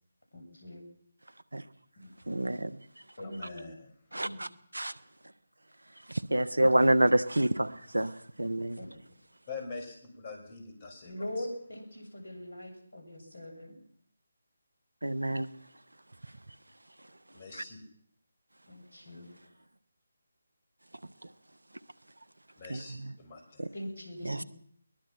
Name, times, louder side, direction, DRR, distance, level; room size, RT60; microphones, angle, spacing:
voice 1, 0.3-0.8 2.0-2.1 3.2-3.8 4.2-4.5 8.8-8.9 11.0-13.8 18.7-19.3 23.7-24.5, left 1 dB, 65° left, 2 dB, 7.7 m, -42 dB
voice 2, 2.3-2.7 4.1-4.5 4.7-4.9 6.1-8.1 8.4-8.8 15.0-15.5 17.5-17.6 22.7-23.1 23.6-23.7 24.3-24.4, right 1 dB, 75° right, 15 dB, 1.2 m, -27 dB
voice 3, 3.2-3.9 9.5-11.3 17.3-17.8 22.6-23.6, left 4 dB, 30° left, 4 dB, 5.9 m, -44 dB
22.5 x 20.0 x 6.0 m, 0.63 s
figure-of-eight pair, 150°, 0 cm